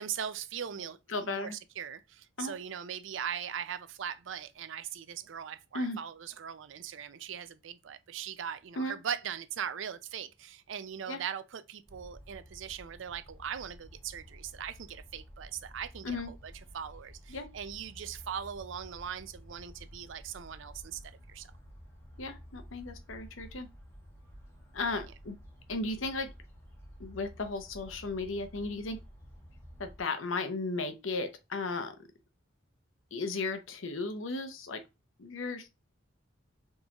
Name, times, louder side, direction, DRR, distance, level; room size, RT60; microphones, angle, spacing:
voice 1, 0.0-21.0 21.3-21.5, right 8 dB, 65° right, 0.5 m, -40 dB
voice 2, 1.1-1.6 2.4-2.5 5.7-6.0 8.8-9.0 11.1-11.2 16.0-16.3 17.3-17.5 22.2-23.7 24.7-25.4 25.7-26.3 27.0-29.0 29.8-31.9 33.1-34.8 35.2-35.7, left 3 dB, 80° left, 0.8 m, -35 dB
sound 1, 11.8-30.0, equal, 15° left, 2.4 m, -51 dB
3.9 x 3.7 x 2.9 m
head